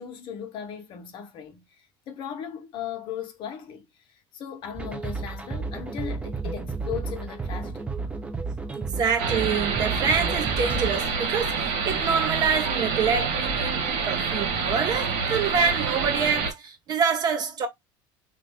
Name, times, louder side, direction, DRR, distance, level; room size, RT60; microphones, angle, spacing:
voice 1, 0.0-8.2, left 8 dB, 45° left, 1.0 m, -37 dB
sound 1, 4.7-11.0, right 4 dB, 10° right, 0.6 m, -32 dB
voice 2, 8.7-17.7, right 6 dB, 35° right, 1.0 m, -26 dB
sound 2, 9.2-16.5, right 5 dB, 65° right, 1.6 m, -27 dB
3.1 x 2.7 x 3.4 m
cardioid pair, 140°, 11 cm